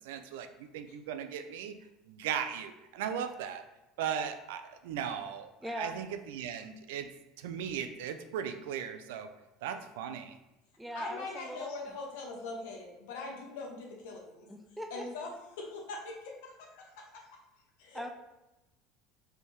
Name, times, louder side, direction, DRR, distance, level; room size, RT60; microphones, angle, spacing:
voice 1, 0.0-1.8 2.1-3.6 4.0-5.5 5.8-7.1 7.4-9.3 9.6-10.4, right 8 dB, 90° right, 8 dB, 0.4 m, -37 dB
voice 2, 5.6-5.9 10.8-11.7 14.5-15.0 17.9-18.1, equal, 5° right, 4 dB, 0.4 m, -39 dB
voice 3, 10.9-14.5 14.9-17.2 17.8-18.1, left 3 dB, 85° left, 0 dB, 1.0 m, -42 dB
3.4 x 2.7 x 4.5 m, 0.98 s
supercardioid pair, 125°, 0 cm